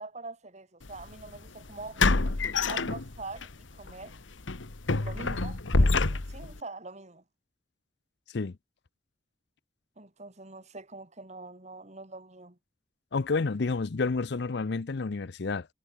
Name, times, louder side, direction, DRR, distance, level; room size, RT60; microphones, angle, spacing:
voice 1, 0.0-2.0 2.7-4.2 5.0-7.2 10.0-12.6, right 3 dB, 35° right, 2.4 m, -44 dB
sound 1, 0.9-1.0 2.0-3.5 3.8-4.0 4.5-6.6, left 3 dB, 80° left, 1.4 m, -26 dB
voice 2, 13.1-15.7, left 4 dB, 60° left, 0.6 m, -30 dB
head